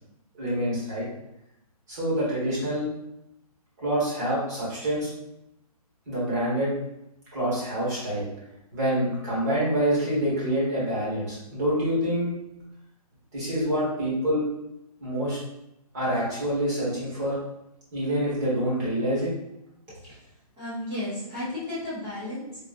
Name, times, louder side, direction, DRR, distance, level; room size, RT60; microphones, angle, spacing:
voice 1, 0.4-1.0 1.9-2.9 3.8-5.1 6.1-6.7 7.3-8.3 8.7-12.3 13.3-14.4 15.0-15.4 15.9-17.4 17.9-19.3, equal, 25° right, -8 dB, 1.2 m, -26 dB
voice 2, 19.9-22.6, left 1 dB, 10° right, -11 dB, 0.5 m, -34 dB
3.7 x 2.3 x 2.4 m, 0.85 s
hypercardioid pair, 180°, 20 cm